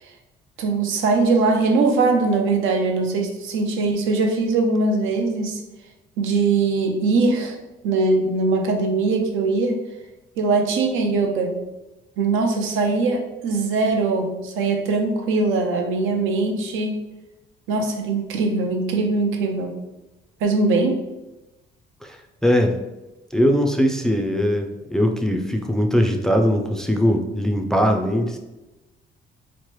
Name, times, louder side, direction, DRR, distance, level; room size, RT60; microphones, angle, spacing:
voice 1, 0.6-5.6 6.2-7.6 7.8-9.8 10.4-11.6 12.2-17.0 17.7-19.8 20.4-21.0, right 3 dB, 85° right, 3 dB, 0.5 m, -21 dB
voice 2, 22.0-22.7 23.3-28.4, equal, 5° left, 2 dB, 0.3 m, -20 dB
3.0 x 2.1 x 3.0 m, 1.0 s
cardioid pair, 90°, 20 cm